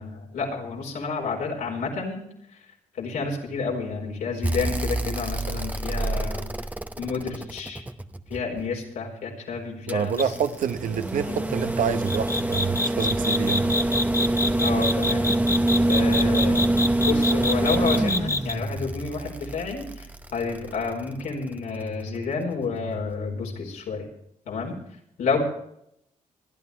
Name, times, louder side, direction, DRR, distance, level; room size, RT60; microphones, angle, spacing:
voice 1, 0.0-2.2 2.9-6.5 7.0-7.8 8.3-10.2 11.3-11.5 14.6-15.3 15.9-16.7 17.0-24.1 24.5-24.7 25.2-25.5, left 4 dB, 90° left, -1 dB, 4.3 m, -30 dB
sound 1, 4.4-8.6 9.9-21.1 22.6-22.7, right 1 dB, 10° right, 0.8 m, -25 dB
voice 2, 9.9-13.7, right 7 dB, 70° right, 10 dB, 1.0 m, -27 dB
sound 2, 10.2-10.4 12.1-18.5, left 3 dB, 20° left, 0.7 m, -26 dB
26.0 x 10.5 x 3.3 m, 0.75 s
cardioid pair, 75°, 14 cm